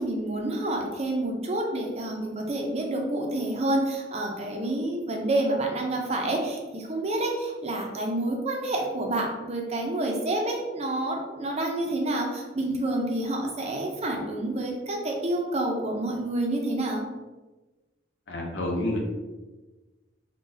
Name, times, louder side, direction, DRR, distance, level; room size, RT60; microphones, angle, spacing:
voice 1, 0.0-17.0, right 1 dB, 35° right, 1 dB, 0.5 m, -28 dB
voice 2, 18.3-19.0, left 1 dB, 85° left, 0 dB, 0.7 m, -28 dB
3.8 x 2.2 x 2.7 m, 1.2 s
head